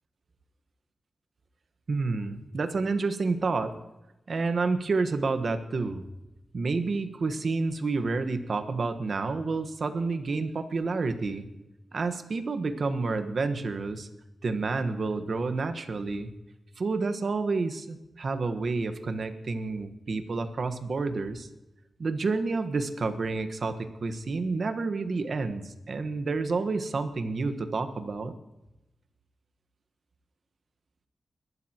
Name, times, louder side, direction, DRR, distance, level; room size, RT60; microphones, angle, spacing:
voice 1, 1.9-3.8 4.3-6.0 6.5-11.5 11.9-14.1 14.4-16.3 16.8-21.5 22.0-28.3, right 3 dB, 60° right, 9 dB, 1.3 m, -29 dB
22.0 x 12.5 x 2.9 m, 0.95 s
wide cardioid pair, 85°, 0 cm